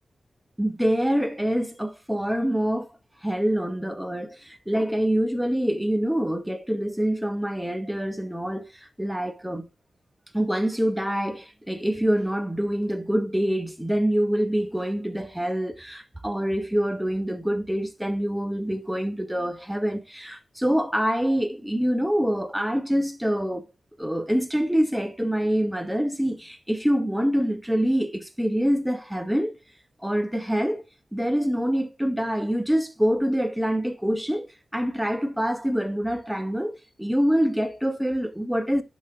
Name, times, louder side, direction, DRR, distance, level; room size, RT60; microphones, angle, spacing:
voice 1, 0.6-2.9 3.2-8.7 9.0-9.7 10.3-23.6 24.0-29.6 30.0-30.8 31.1-38.8, equal, 5° right, 1.0 m, -25 dB
10.5 x 3.8 x 3.7 m
wide cardioid pair, 85°, 0 cm